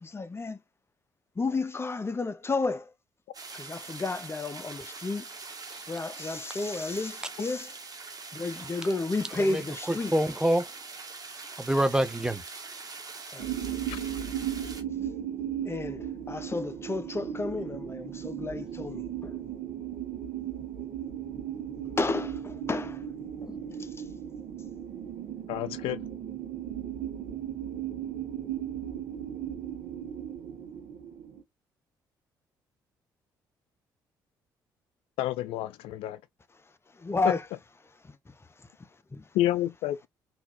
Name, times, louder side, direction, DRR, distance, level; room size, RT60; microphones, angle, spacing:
voice 1, 0.0-0.6 1.4-2.8 3.5-5.2 5.9-7.7 8.3-10.1 13.3-13.5 15.7-19.3 22.0-23.0 23.4-23.9 37.0-37.4 39.1-39.2, left 3 dB, 25° left, 0.8 m, -32 dB
sound 1, 3.3-14.8, right 4 dB, 40° right, 1.6 m, -43 dB
voice 2, 9.4-10.7 11.6-12.4, right 1 dB, 10° right, 0.9 m, -26 dB
sound 2, 13.4-31.4, right 10 dB, 65° right, 1.2 m, -36 dB
voice 3, 25.5-26.1 35.2-36.2 37.2-37.3 39.3-40.1, left 14 dB, 75° left, 0.4 m, -29 dB
4.0 x 2.9 x 2.5 m
hypercardioid pair, 50°, 10 cm